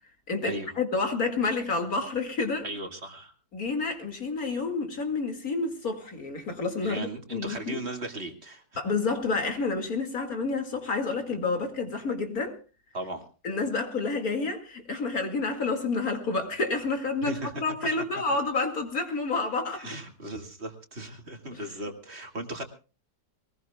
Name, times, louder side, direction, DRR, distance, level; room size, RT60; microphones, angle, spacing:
voice 1, 0.3-2.7 3.5-7.8 8.8-12.6 13.4-19.9 21.5-21.6, left 3 dB, 55° left, 2.6 m, -29 dB
voice 2, 2.6-3.3 6.8-8.6 12.9-13.2 17.3-17.5 19.7-22.6, right 1 dB, 35° right, 2.3 m, -37 dB
22.5 x 20.0 x 2.3 m
omnidirectional pair, 1.9 m